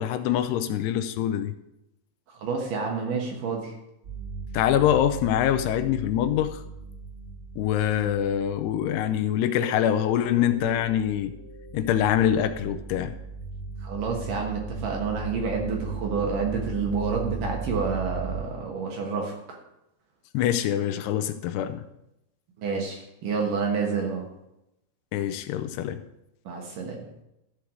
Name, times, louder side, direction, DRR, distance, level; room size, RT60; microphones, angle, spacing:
voice 1, 0.0-1.5 4.5-6.6 7.6-11.3 11.7-13.1 20.3-21.8 25.1-26.0, left 10 dB, 85° left, 9 dB, 2.6 m, -24 dB
voice 2, 2.3-3.8 13.8-19.6 22.6-24.3 26.5-27.0, right 5 dB, 65° right, 0 dB, 2.6 m, -29 dB
sound 1, 4.0-9.2 9.6-18.4, right 4 dB, 35° right, 4.1 m, -37 dB
13.0 x 4.7 x 6.3 m, 0.87 s
omnidirectional pair, 4.8 m